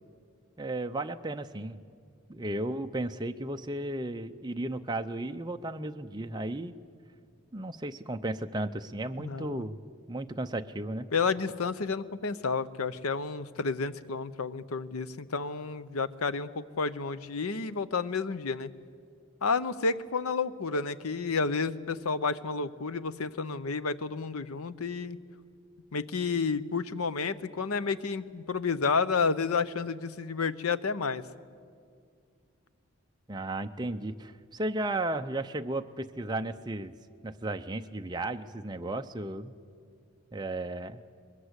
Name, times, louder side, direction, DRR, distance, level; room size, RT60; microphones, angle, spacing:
voice 1, 0.6-1.8 2.3-6.7 7.5-9.8 10.1-11.1 33.3-36.9 37.2-39.5 40.3-41.0, right 2 dB, 20° right, 6 dB, 0.6 m, -34 dB
voice 2, 9.2-9.6 11.1-18.7 19.4-25.2 25.9-31.2, left 4 dB, 85° left, 15 dB, 0.8 m, -31 dB
21.5 x 21.5 x 8.1 m, 2.2 s
head